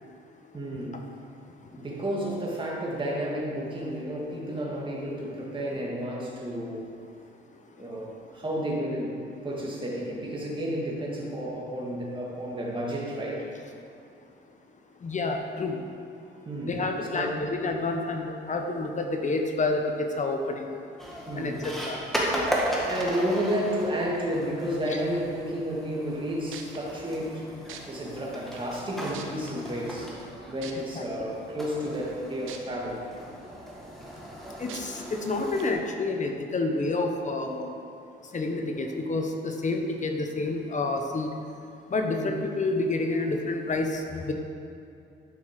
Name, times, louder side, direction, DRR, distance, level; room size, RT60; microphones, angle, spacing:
voice 1, 0.5-1.0 1.8-6.9 7.8-13.5 16.4-16.8 17.1-17.5 21.3-21.7 22.8-27.5 27.9-30.1 30.5-33.0 42.1-42.4, equal, 25° right, -3 dB, 2.3 m, -31 dB
voice 2, 15.0-15.8 16.7-20.7 21.3-22.0 30.8-31.3 34.6-37.7 38.3-41.3 41.9-44.3, left 2 dB, 40° left, 4 dB, 1.0 m, -29 dB
sound 1, 21.0-35.7, equal, ahead, 2.0 m, -36 dB
sound 2, 26.5-26.8 27.7-27.8 28.6-28.7 29.1-29.5 30.6-30.7 32.5-32.6 33.1-33.2 34.7-34.8 35.6-35.7, right 10 dB, 90° right, 0.9 m, -41 dB
11.0 x 6.3 x 4.9 m, 2.6 s
cardioid pair, 90°, 20 cm